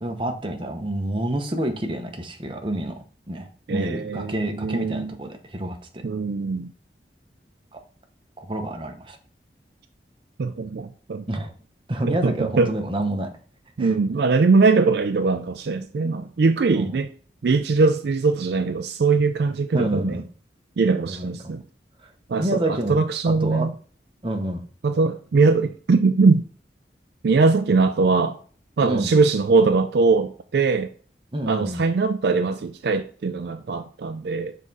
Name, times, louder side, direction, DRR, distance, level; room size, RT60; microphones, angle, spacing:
voice 1, 0.0-2.9 3.3-6.0 7.7-7.8 8.4-9.2 11.3-11.5 11.9-13.3 13.8-13.9 16.0-16.2 16.7-16.9 19.7-20.2 21.1-21.5 22.0-22.1 22.4-23.0 23.3-23.7 24.2-24.6 28.8-29.1 31.3-31.8, right 1 dB, 30° right, 0.9 m, -28 dB
voice 2, 3.7-5.1 6.0-6.7 10.4-11.2 12.0-12.7 13.8-17.1 17.4-20.2 20.8-21.6 22.3-23.7 24.8-26.4 27.2-28.4 28.8-30.9 31.5-34.6, right 4 dB, 65° right, 0.4 m, -21 dB
6.5 x 3.7 x 4.0 m
head